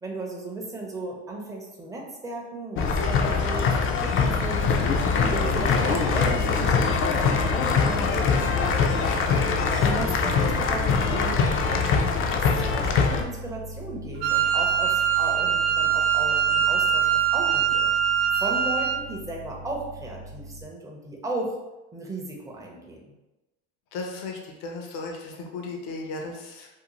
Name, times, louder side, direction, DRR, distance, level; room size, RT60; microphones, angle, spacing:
voice 1, 0.0-4.7 5.3-9.0 9.4-17.9 18.3-21.6 21.9-23.1, right 2 dB, 10° right, -1 dB, 0.6 m, -35 dB
sound 1, 2.8-13.2, left 5 dB, 40° left, 0.4 m, -23 dB
sound 2, 4.2-20.7, right 1 dB, 65° right, 0.8 m, -38 dB
Wind instrument woodwind instrument, 14.2-19.0, right 9 dB, 80° right, 0.5 m, -23 dB
voice 2, 23.9-26.7, left 3 dB, 70° left, 1 dB, 0.7 m, -35 dB
2.7 x 2.0 x 2.9 m, 1.0 s
supercardioid pair, 95°, 33 cm